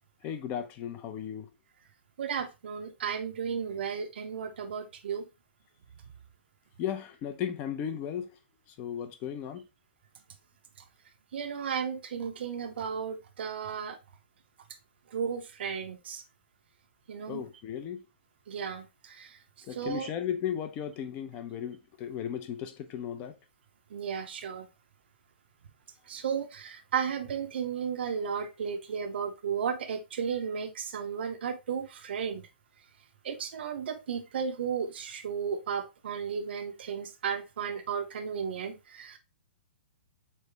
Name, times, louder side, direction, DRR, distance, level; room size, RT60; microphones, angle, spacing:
voice 1, 0.2-1.5 6.8-8.3 8.8-9.6 17.3-18.0 19.7-23.3, left 9 dB, 25° left, 0.6 m, -35 dB
voice 2, 2.2-5.3 11.3-14.0 15.1-16.2 17.1-17.4 18.5-19.4 19.7-20.1 23.9-24.7 26.1-32.4 33.2-39.2, right 7 dB, 65° right, 0.7 m, -34 dB
4.1 x 3.3 x 3.2 m
hypercardioid pair, 150°, 6 cm